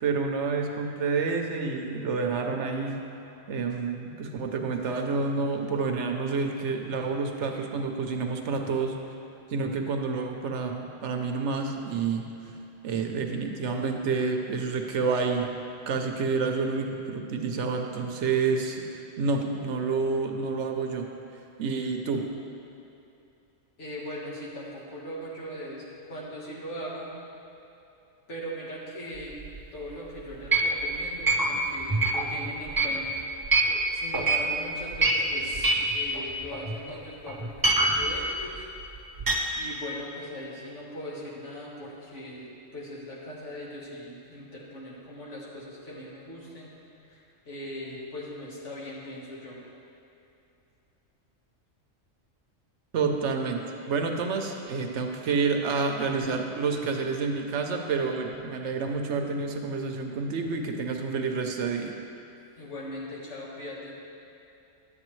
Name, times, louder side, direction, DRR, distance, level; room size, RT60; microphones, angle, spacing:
voice 1, 0.0-3.0 3.5-9.0 9.5-12.3 12.8-15.5 15.9-21.1 21.6-22.3 52.9-62.0, right 4 dB, 70° right, 3 dB, 0.9 m, -29 dB
voice 2, 23.8-27.1 28.3-29.4 29.7-33.2 33.9-38.7 39.5-46.8 47.0-49.6 62.6-63.9, equal, 65° left, -4 dB, 1.7 m, -40 dB
sound 1, 29.1-29.8 30.3-33.8 34.1-34.5 34.8-37.0 37.3-39.3, right 3 dB, 30° right, 0.4 m, -25 dB
10.5 x 8.0 x 3.1 m, 2.7 s
omnidirectional pair, 1.3 m